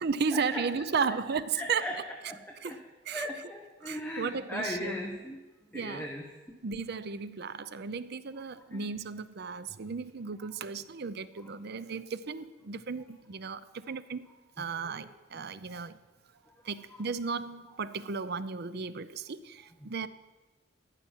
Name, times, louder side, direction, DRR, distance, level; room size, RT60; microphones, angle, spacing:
voice 1, 0.0-2.0 2.6-3.3 3.8-5.0 5.7-6.1 6.6-14.3 14.6-16.0 16.6-20.1, right 5 dB, 60° right, 0.6 m, -35 dB
voice 2, 1.5-1.9 2.3-2.8 3.1-5.4 5.7-6.6 8.7-8.8 15.3-15.8, left 1 dB, 10° left, 1.1 m, -38 dB
14.0 x 5.9 x 9.0 m
head